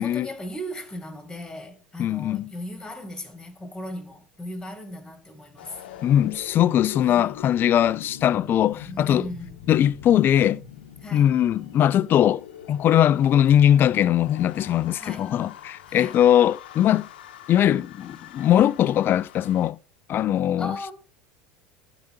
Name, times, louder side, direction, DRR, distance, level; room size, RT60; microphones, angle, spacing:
voice 1, 0.0-5.8 7.1-7.3 8.9-9.6 11.0-11.3 15.0-15.3 15.9-16.2 20.6-20.9, left 1 dB, 10° left, 3.1 m, -37 dB
voice 2, 2.0-2.5 6.0-9.3 9.7-10.6 11.1-12.4 12.7-17.1 17.5-19.8 20.1-20.9, left 11 dB, 40° left, 0.5 m, -20 dB
sound 1, 5.6-19.7, left 10 dB, 80° left, 0.9 m, -43 dB
11.5 x 5.0 x 6.9 m
hypercardioid pair, 80°, 5 cm